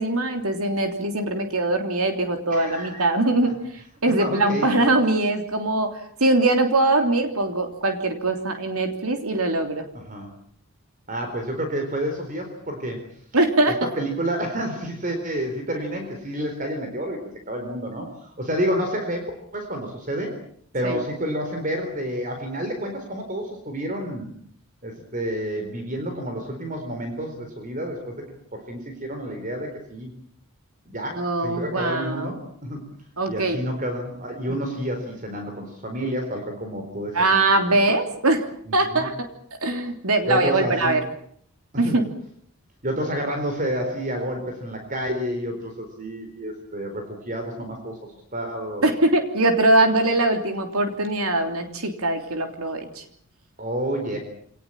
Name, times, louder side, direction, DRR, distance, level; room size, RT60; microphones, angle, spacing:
voice 1, 0.0-3.5 4.0-9.8 13.3-13.8 20.8-21.0 31.1-32.3 33.2-33.6 37.1-38.4 38.7-39.3 39.6-41.0 41.8-42.0 48.8-53.0, right 2 dB, 80° right, 5 dB, 3.2 m, -22 dB
voice 2, 2.5-3.1 3.4-3.5 4.1-4.8 9.9-10.3 11.1-13.0 13.8-20.3 20.7-24.3 24.8-28.2 28.5-30.1 30.9-32.9 33.3-37.6 38.6-39.1 40.2-41.0 41.7-42.0 42.8-48.0 48.3-48.9 53.6-54.2, equal, 35° right, 5 dB, 4.2 m, -29 dB
26.0 x 19.5 x 8.8 m, 0.65 s
head